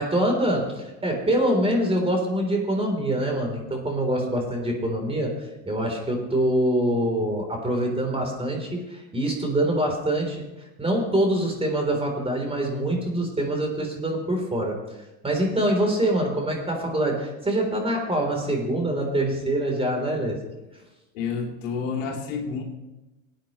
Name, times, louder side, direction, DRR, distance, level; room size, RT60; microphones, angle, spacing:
voice 1, 0.0-5.3 5.7-10.4 10.8-14.8 15.2-20.4, right 1 dB, 15° right, 1 dB, 3.7 m, -24 dB
voice 2, 21.1-22.6, left 5 dB, 75° left, 1 dB, 2.5 m, -30 dB
18.5 x 9.2 x 3.2 m, 1.1 s
hypercardioid pair, 90°, 39 cm